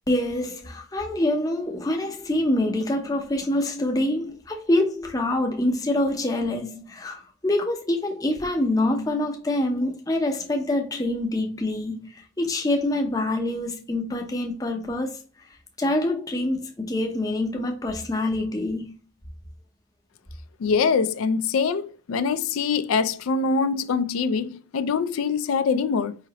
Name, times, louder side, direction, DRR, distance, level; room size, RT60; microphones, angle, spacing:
voice 1, 0.1-15.2 15.8-18.9, left 1 dB, 15° left, 0.6 m, -25 dB
voice 2, 20.6-26.2, left 5 dB, 80° left, 0.4 m, -24 dB
4.8 x 2.8 x 2.9 m
head